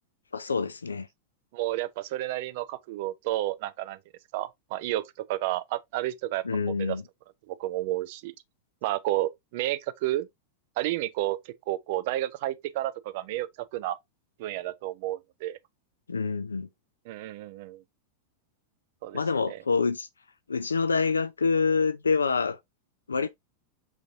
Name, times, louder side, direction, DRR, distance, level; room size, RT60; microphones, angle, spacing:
voice 1, 0.3-1.1 6.4-7.0 16.1-16.7 19.1-20.1 20.5-22.6 23.1-23.3, left 4 dB, 75° left, 0.3 m, -26 dB
voice 2, 1.5-4.0 4.3-5.0 5.3-7.0 7.5-8.3 8.8-10.3 10.8-14.0 14.4-15.6 17.1-17.8 19.0-19.2 19.5-19.6 23.2-23.3, right 15 dB, 50° right, 0.5 m, -31 dB
5.0 x 3.9 x 2.6 m
figure-of-eight pair, 90°, 0 cm